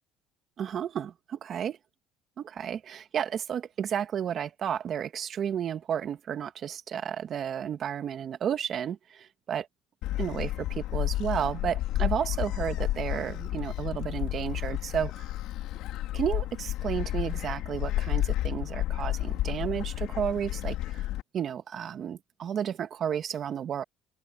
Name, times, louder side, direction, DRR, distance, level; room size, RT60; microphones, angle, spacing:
voice 1, 0.6-1.8 2.4-9.0 9.5-9.7 10.2-15.3 16.1-21.1 21.3-23.8, right 9 dB, 45° right, 1.9 m, -32 dB
Gull seagull, 10.0-21.2, left 14 dB, 70° left, 2.5 m, -31 dB
cardioid pair, 120°, 0 cm